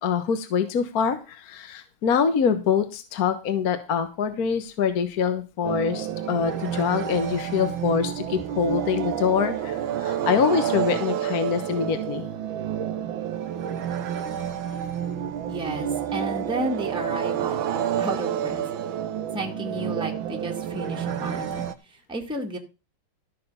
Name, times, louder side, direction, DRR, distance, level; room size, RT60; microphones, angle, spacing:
voice 1, 0.0-12.3, left 6 dB, 50° left, 9 dB, 1.5 m, -25 dB
sound 1, 5.6-21.7, right 9 dB, 75° right, 1.7 m, -29 dB
voice 2, 15.5-17.6 18.0-18.6 19.3-21.7 22.1-22.6, right 1 dB, ahead, 1 dB, 1.9 m, -32 dB
14.0 x 6.7 x 5.5 m, 0.30 s
omnidirectional pair, 2.2 m